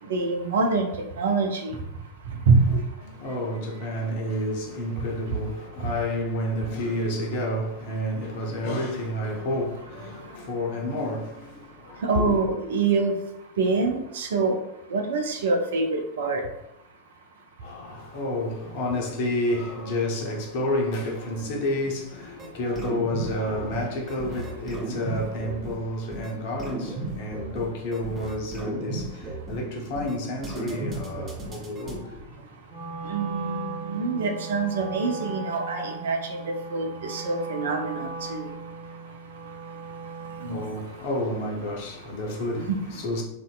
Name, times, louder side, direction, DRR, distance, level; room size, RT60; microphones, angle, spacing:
voice 1, 0.1-0.9 1.2-1.8 2.5-2.6 12.0-13.1 13.6-14.6 14.9-16.4 30.7-30.9 33.1-36.4 36.7-38.5 40.4-40.6 42.7-42.8, right 4 dB, 60° right, 0.4 m, -25 dB
voice 2, 2.7-12.3 17.6-32.4 40.5-43.2, left 1 dB, 50° left, 0.6 m, -30 dB
sound 1, 22.4-22.5 22.8-23.8 24.1-25.7 26.1-26.3 26.6-27.6 27.9-29.5 30.0-30.2 30.4-31.9, right 2 dB, 25° right, 0.7 m, -35 dB
Wind instrument woodwind instrument, 32.7-40.7, right 4 dB, 5° right, 1.2 m, -37 dB
2.5 x 2.1 x 2.3 m
figure-of-eight pair, 90°, 0 cm